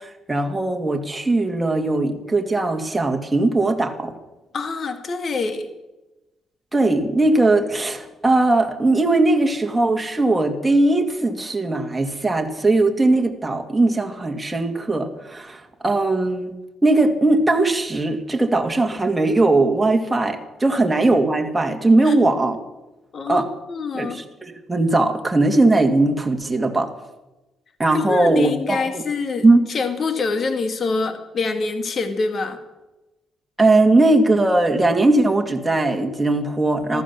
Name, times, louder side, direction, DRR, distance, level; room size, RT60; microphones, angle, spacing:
voice 1, 0.0-4.1 6.7-16.6 16.8-22.6 23.3-23.5 24.0-26.9 27.8-29.0 29.4-29.7 33.6-37.0, right 2 dB, 15° right, 3 dB, 2.1 m, -19 dB
voice 2, 4.5-5.7 20.7-20.8 22.0-22.2 23.1-24.2 27.9-32.6 36.9-37.0, left 4 dB, 50° left, 8 dB, 2.2 m, -26 dB
14.5 x 13.5 x 7.0 m, 1.0 s
cardioid pair, 90°, 0 cm